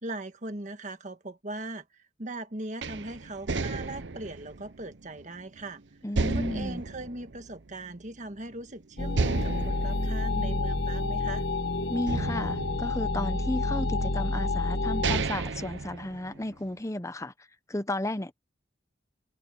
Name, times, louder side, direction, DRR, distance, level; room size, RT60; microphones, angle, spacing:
voice 1, 0.0-5.8 6.3-11.5, right 2 dB, 40° right, 1.7 m, -39 dB
sound 1, 2.8-5.6 6.1-8.1 8.4-8.5 9.1-11.5 12.1-13.6 14.4-14.5 14.8-16.6, right 3 dB, 65° right, 0.8 m, -33 dB
voice 2, 6.0-6.8 11.9-17.3 17.7-18.3, left 1 dB, 15° left, 0.8 m, -33 dB
sound 2, 9.0-15.2, left 2 dB, 60° left, 1.4 m, -29 dB
head